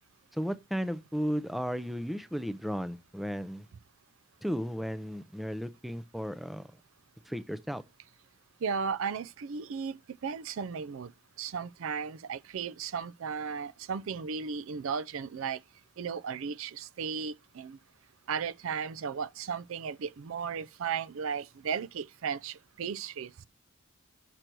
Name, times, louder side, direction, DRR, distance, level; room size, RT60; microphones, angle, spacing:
voice 1, 0.3-3.7 4.4-6.7 7.3-7.8, equal, ahead, 0.4 m, -34 dB
voice 2, 8.6-11.1 11.4-15.6 16.0-17.8 18.3-23.3, right 6 dB, 65° right, 0.4 m, -35 dB
6.6 x 6.1 x 4.5 m
head